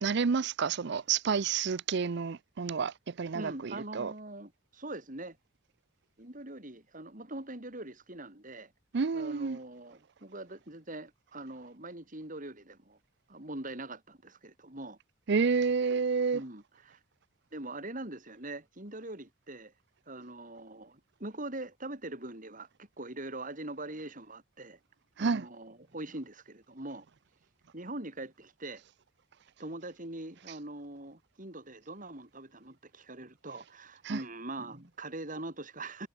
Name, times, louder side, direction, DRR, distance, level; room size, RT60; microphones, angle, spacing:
voice 1, 0.0-4.1 8.9-9.6 15.3-16.4 25.2-25.4 34.0-34.2, right 5 dB, 55° right, 0.5 m, -29 dB
voice 2, 3.3-5.4 6.2-8.7 9.1-13.0 13.3-15.0 16.3-17.0 17.5-19.7 20.1-24.8 25.2-27.1 27.7-28.8 29.6-36.1, right 2 dB, 40° right, 4.5 m, -42 dB
head